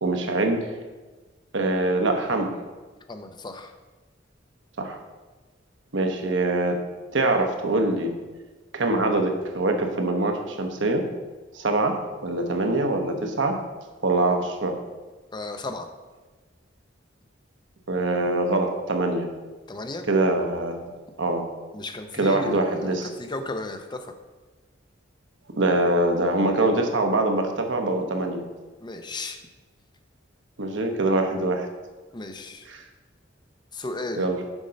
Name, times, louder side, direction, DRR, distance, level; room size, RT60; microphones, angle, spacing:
voice 1, 0.0-0.7 1.5-2.5 4.8-5.0 5.9-6.8 7.1-8.1 8.7-11.0 11.5-13.6 14.0-14.7 17.9-19.3 20.1-20.8 21.2-21.4 22.2-23.1 25.6-28.4 30.6-31.7 32.7-32.8 34.2-34.4, right 2 dB, 70° right, 4 dB, 1.0 m, -23 dB
voice 2, 3.1-3.7 15.3-15.9 19.7-20.1 21.7-24.1 28.8-29.4 32.1-32.7 33.7-34.3, left 2 dB, 25° left, 7 dB, 0.6 m, -34 dB
7.2 x 5.3 x 5.2 m, 1.3 s
head